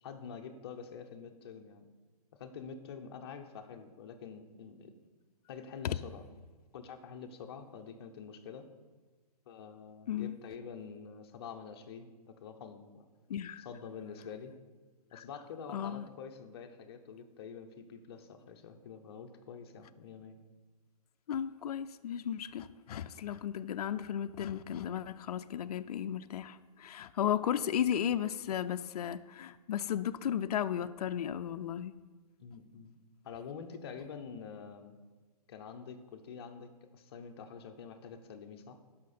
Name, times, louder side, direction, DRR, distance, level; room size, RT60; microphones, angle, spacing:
voice 1, 0.0-1.9 2.4-4.9 5.5-6.2 6.7-8.7 9.5-13.1 13.6-14.5 15.1-20.4 32.4-33.0 33.2-35.0 35.5-38.8, left 6 dB, 40° left, 6 dB, 0.7 m, -47 dB
voice 2, 13.3-13.7 15.1-15.2 15.7-16.1 21.3-32.0, left 9 dB, 70° left, 11 dB, 0.4 m, -35 dB
11.5 x 5.8 x 4.2 m, 1.3 s
hypercardioid pair, 170°, 20 cm